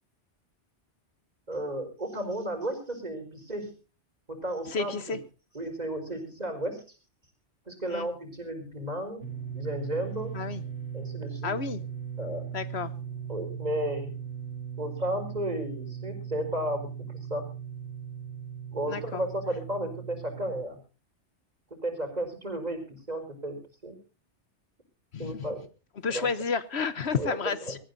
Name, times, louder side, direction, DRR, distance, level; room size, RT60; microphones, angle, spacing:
voice 1, 1.5-3.7 4.3-5.2 5.5-6.9 7.7-9.3 9.5-10.4 10.9-11.5 12.2-12.5 13.3-14.2 14.8-17.4 18.7-20.8 21.8-24.0 25.2-25.6 26.1-26.3 27.2-27.8, right 1 dB, 35° right, 4.9 m, -33 dB
voice 2, 4.7-5.2 7.9-8.1 10.3-10.6 11.4-11.8 12.5-12.9 18.9-19.2 25.1-25.5 26.0-27.8, left 5 dB, 65° left, 1.2 m, -31 dB
sound 1, 9.2-20.6, right 8 dB, 80° left, 2.8 m, -38 dB
24.0 x 14.5 x 2.7 m
omnidirectional pair, 1.2 m